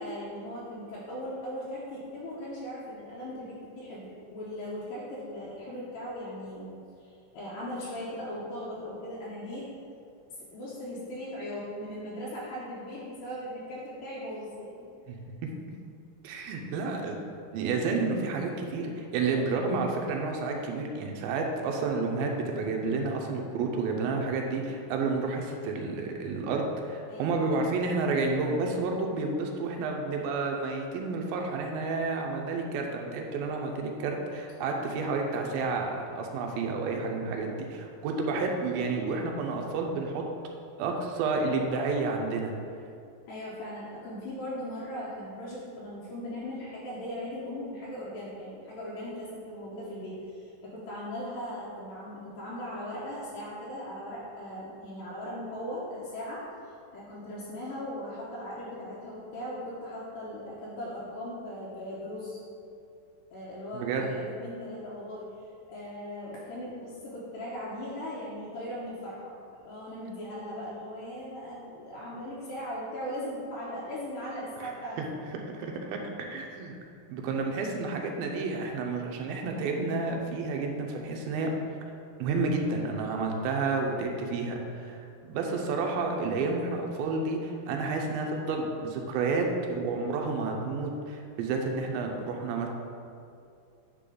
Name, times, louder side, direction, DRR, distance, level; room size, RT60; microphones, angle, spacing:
voice 1, 0.0-6.7 7.0-9.7 10.3-14.9 27.1-27.4 43.3-56.4 56.9-62.4 63.3-69.4 69.6-75.2, equal, 75° left, -7 dB, 2.6 m, -38 dB
voice 2, 16.2-17.2 17.5-40.2 40.8-42.5 63.7-64.1 74.6-74.7 75.0-76.8 77.1-81.5 82.2-92.7, right 3 dB, 80° right, 2 dB, 2.5 m, -30 dB
9.9 x 3.7 x 3.8 m, 2.5 s
omnidirectional pair, 4.3 m